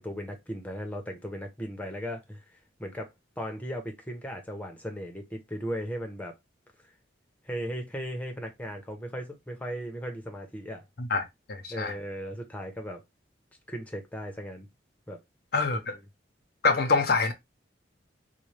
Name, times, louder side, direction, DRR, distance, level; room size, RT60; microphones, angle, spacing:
voice 1, 0.0-2.4 2.8-6.3 7.5-10.8 11.7-13.0 13.7-14.7 15.1-15.2 15.7-15.9, equal, 10° left, 0.8 m, -37 dB
voice 2, 11.0-11.9 15.5-15.9 16.6-17.3, left 4 dB, 55° left, 0.7 m, -26 dB
4.2 x 2.2 x 3.2 m
head